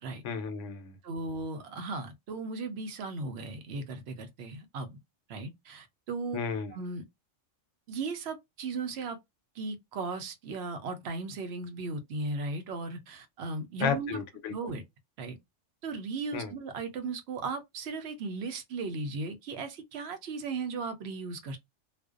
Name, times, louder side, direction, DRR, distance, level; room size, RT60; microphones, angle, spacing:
voice 1, 0.2-0.9 6.3-6.7 13.8-14.5 16.3-16.5, left 6 dB, 75° left, 0.9 m, -33 dB
voice 2, 1.0-4.9 5.3-6.4 6.7-7.0 7.9-9.2 9.6-14.2 14.5-14.8 15.2-15.4 15.8-21.6, right 3 dB, 65° right, 0.8 m, -36 dB
2.5 x 2.1 x 2.3 m
omnidirectional pair, 1.3 m